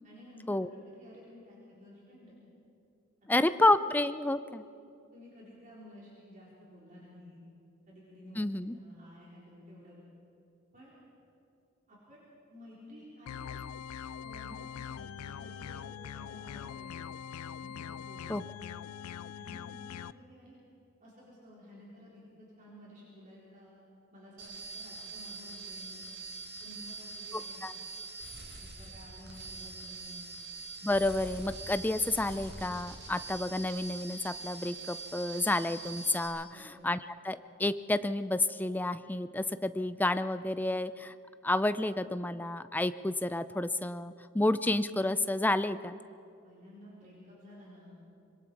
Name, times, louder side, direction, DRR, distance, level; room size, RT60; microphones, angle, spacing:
voice 1, 0.0-2.4 3.3-3.7 5.1-7.4 7.9-10.0 10.7-10.9 11.9-12.2 12.5-13.5 14.2-15.1 15.4-15.8 16.2-17.1 17.6-18.3 19.3-20.6 21.0-23.8 24.1-26.1 26.6-27.6 28.6-30.3 36.5-36.8 46.4-48.0, equal, 40° right, -7 dB, 4.3 m, -53 dB
voice 2, 3.3-4.7 8.4-8.8 18.3-18.4 27.6-27.7 30.8-37.0 37.2-41.1 41.4-46.0, left 2 dB, 10° left, 12 dB, 0.4 m, -30 dB
sound 1, 13.3-20.1, left 8 dB, 85° left, 0.4 m, -42 dB
sound 2, 24.4-36.3, right 3 dB, 55° right, 5.1 m, -44 dB
25.0 x 22.5 x 4.7 m, 2.5 s
head